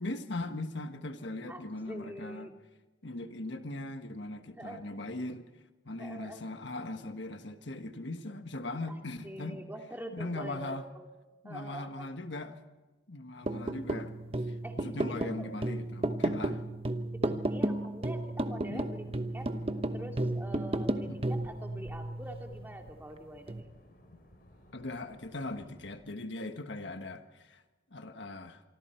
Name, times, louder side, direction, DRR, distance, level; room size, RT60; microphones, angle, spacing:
voice 1, 0.0-2.5 3.0-5.4 5.8-9.6 10.1-10.8 11.4-12.6 13.1-16.6 17.3-17.4 18.7-18.9 21.1-21.2 24.7-27.6 27.9-28.6, left 2 dB, 70° left, 7 dB, 1.5 m, -39 dB
voice 2, 1.5-2.5 4.6-4.8 6.0-6.4 8.9-9.0 9.2-11.1 11.4-12.1 14.6-14.8 15.2-15.5 17.1-19.1 19.3-19.5 19.9-23.7, right 1 dB, 10° right, 2 dB, 2.4 m, -44 dB
sound 1, 13.4-22.9 23.5-23.6, right 1 dB, 30° right, 1.0 m, -33 dB
sound 2, 19.0-26.0, equal, 50° left, 4.1 m, -59 dB
26.5 x 24.5 x 4.5 m, 1.2 s
head